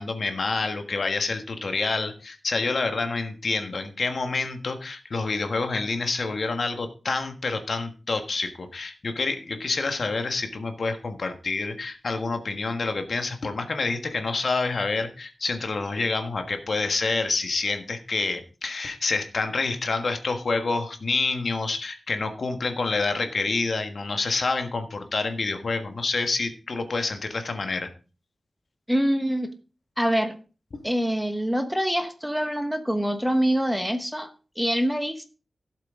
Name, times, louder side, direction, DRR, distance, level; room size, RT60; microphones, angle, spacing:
voice 1, 0.0-27.9 30.7-30.8, left 3 dB, 55° left, 7 dB, 1.5 m, -28 dB
voice 2, 28.9-29.5 30.0-30.4 30.8-34.3 34.6-35.2, equal, ahead, 8 dB, 1.0 m, -25 dB
16.0 x 7.6 x 3.7 m, 0.35 s
wide cardioid pair, 120°, 0 cm